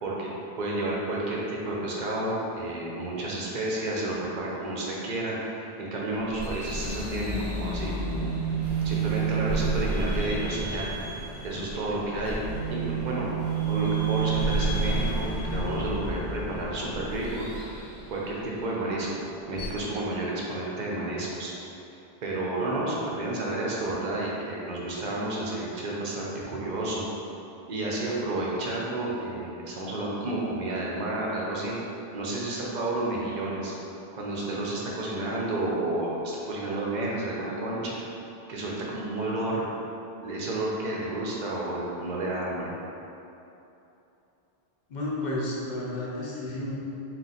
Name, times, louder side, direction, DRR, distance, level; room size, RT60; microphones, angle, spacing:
voice 1, 0.0-8.3 8.8-10.9 11.4-12.4 12.7-13.3 13.7-17.8 18.1-19.1 19.5-21.5 22.2-27.0 27.7-31.7 32.1-33.7 34.1-38.1 38.5-39.7 40.2-42.6, right 2 dB, 50° right, -4 dB, 0.7 m, -31 dB
sound 1, 6.1-18.8 19.6-19.8, right 4 dB, 15° left, 0.9 m, -30 dB
voice 2, 44.9-46.7, left 1 dB, 50° left, -5 dB, 0.8 m, -32 dB
3.7 x 2.5 x 4.1 m, 2.9 s
omnidirectional pair, 1.1 m